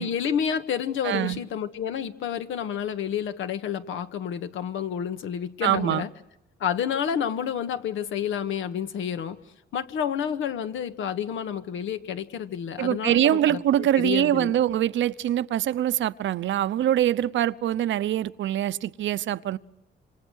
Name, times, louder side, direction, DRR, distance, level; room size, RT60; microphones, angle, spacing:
voice 1, 0.0-6.1 6.6-9.4 9.7-14.5, left 8 dB, 80° left, 1.7 m, -29 dB
voice 2, 1.0-1.4 5.6-6.0 12.8-19.6, right 12 dB, 70° right, 0.9 m, -24 dB
27.5 x 26.0 x 6.5 m
cardioid pair, 90°, 20 cm